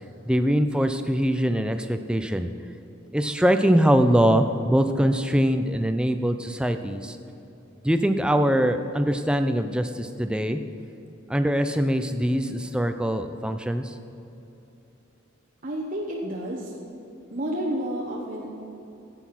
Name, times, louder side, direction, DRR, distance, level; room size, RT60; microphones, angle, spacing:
voice 1, 0.3-2.5 3.1-7.2 7.8-10.6 11.3-13.9, equal, 5° right, 7 dB, 0.5 m, -23 dB
voice 2, 15.6-16.7 17.3-18.5, right 1 dB, 40° right, -3 dB, 1.1 m, -30 dB
14.0 x 8.2 x 5.9 m, 2.8 s
head